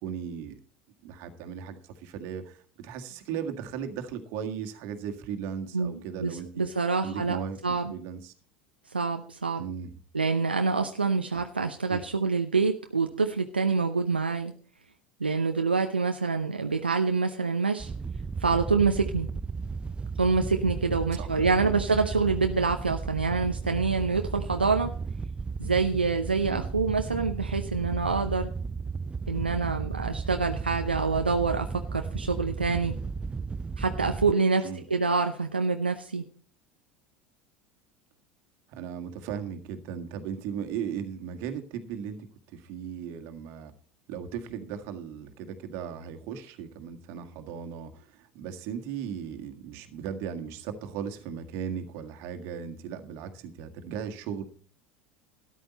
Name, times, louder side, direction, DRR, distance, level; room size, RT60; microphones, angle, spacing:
voice 1, 0.0-0.6 1.0-6.6 7.0-8.3 9.6-9.9 11.3-11.4 11.9-12.0 21.1-21.3 21.6-21.8 26.5-26.6 34.6-35.0 38.7-43.7 44.1-54.4, right 7 dB, 55° right, 7 dB, 1.7 m, -37 dB
voice 2, 5.7-7.4 7.6-7.9 8.9-9.6 10.1-14.5 15.2-17.9 18.4-19.3 20.2-24.9 25.6-28.5 29.3-33.0 33.8-36.3, right 4 dB, 90° right, 5 dB, 0.7 m, -26 dB
Wind / Boat Water vehicle, 17.8-34.3, right 5 dB, 20° right, 0.5 m, -34 dB
13.0 x 11.0 x 4.1 m, 0.43 s
figure-of-eight pair, 75°, 5 cm